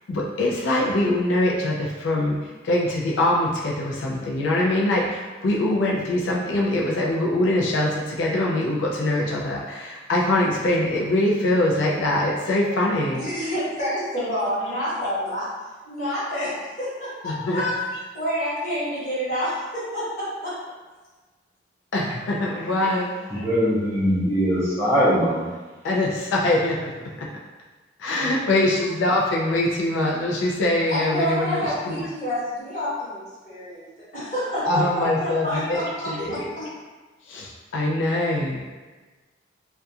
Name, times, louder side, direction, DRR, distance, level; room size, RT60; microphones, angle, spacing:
voice 1, 0.1-13.3 17.2-17.7 21.9-23.5 25.8-26.9 27.2-27.3 28.0-32.1 34.6-36.5 37.3-38.6, left 1 dB, 75° left, -3 dB, 0.3 m, -23 dB
voice 2, 13.2-15.5 15.8-17.8 18.1-20.6 30.9-36.7, equal, 40° left, -10 dB, 1.1 m, -28 dB
voice 3, 23.3-25.5, equal, 15° right, -10 dB, 0.6 m, -21 dB
2.3 x 2.1 x 2.7 m, 1.3 s
head